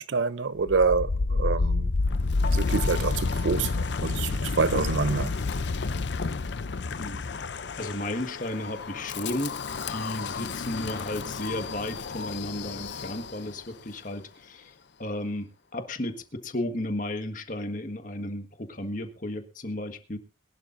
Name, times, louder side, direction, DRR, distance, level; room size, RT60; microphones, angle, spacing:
voice 1, 0.0-1.9 2.5-5.3, right 4 dB, 75° right, 0.6 m, -27 dB
Wind, 0.6-13.6, left 3 dB, 65° left, 0.6 m, -30 dB
voice 2, 7.8-9.6 9.9-14.7 15.0-20.2, left 1 dB, 45° left, 1.6 m, -34 dB
22.5 x 12.0 x 2.6 m
head